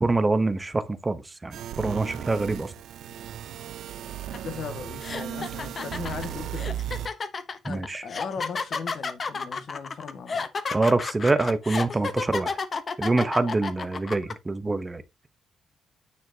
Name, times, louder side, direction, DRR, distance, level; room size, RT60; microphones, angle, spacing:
voice 1, 0.0-2.7 7.6-8.0 10.7-12.6 13.0-15.3, right 3 dB, 15° right, 0.8 m, -25 dB
sound 1, 1.5-7.1, right 10 dB, 90° right, 0.7 m, -35 dB
sound 2, 4.3-4.5 5.0-14.3, left 4 dB, 35° left, 0.8 m, -31 dB
voice 2, 4.4-6.8 7.6-10.4, left 6 dB, 60° left, 1.7 m, -38 dB
9.4 x 6.3 x 2.8 m
cardioid pair, 140°, 0 cm